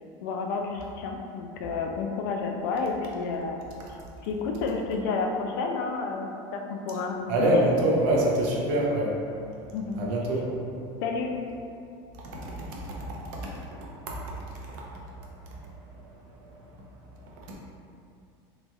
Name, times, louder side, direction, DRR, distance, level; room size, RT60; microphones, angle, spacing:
voice 1, 0.2-3.6 4.2-7.3 7.5-7.6 9.7-10.0 11.0-11.3, left 4 dB, 65° left, 2 dB, 0.4 m, -30 dB
voice 2, 7.3-9.1 10.0-10.5 12.2-12.7 13.1-13.4 14.1-14.2 14.5-14.6 17.5-17.6, right 1 dB, 55° right, -3 dB, 0.7 m, -25 dB
4.0 x 2.9 x 2.3 m, 2.5 s
cardioid pair, 175°, 12 cm